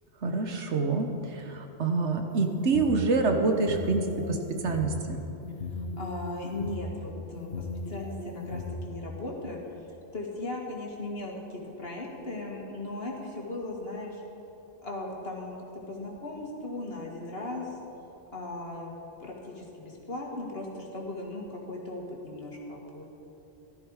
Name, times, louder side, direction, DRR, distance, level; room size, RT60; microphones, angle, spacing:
voice 1, 0.2-4.4 4.6-5.2, right 3 dB, 70° right, 4 dB, 1.4 m, -27 dB
sound 1, 2.3-3.0 3.5-4.9 5.4-6.7 7.4-8.7, left 4 dB, 80° left, 1.6 m, -37 dB
voice 2, 5.7-9.6 10.1-14.2 14.8-15.6 15.9-17.8 18.3-23.1, left 2 dB, 55° left, -1 dB, 2.3 m, -37 dB
15.0 x 13.0 x 4.9 m, 2.9 s
omnidirectional pair, 1.2 m